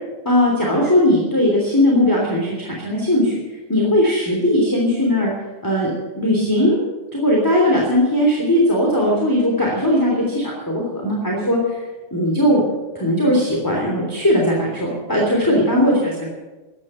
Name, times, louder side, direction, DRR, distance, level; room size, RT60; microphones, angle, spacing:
voice 1, 0.2-3.4 3.7-5.3 5.6-5.9 6.2-6.8 7.1-11.8 12.1-12.6 12.9-16.3, left 1 dB, 5° left, -2 dB, 2.7 m, -18 dB
15.0 x 11.5 x 7.7 m, 1.2 s
omnidirectional pair, 3.6 m